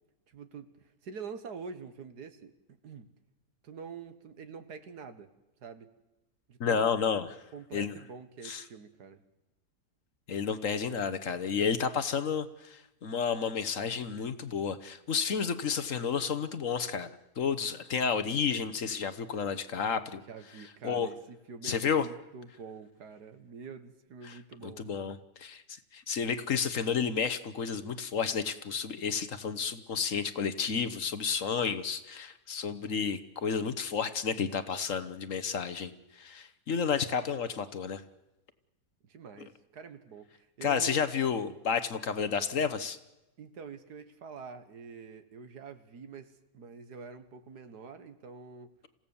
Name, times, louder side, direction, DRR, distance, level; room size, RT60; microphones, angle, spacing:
voice 1, 0.3-2.5 2.8-3.1 3.6-5.3 5.6-5.9 6.5-6.9 7.5-9.2 20.3-24.9 39.0-41.0 43.4-48.8, right 5 dB, 75° right, 10 dB, 2.0 m, -46 dB
voice 2, 6.6-7.4 7.7-7.9 8.4-8.6 10.3-20.2 20.8-21.1 21.6-22.1 24.2-38.0 40.6-43.0, left 6 dB, 55° left, 12 dB, 1.3 m, -31 dB
27.5 x 16.5 x 7.1 m, 0.97 s
omnidirectional pair, 1.7 m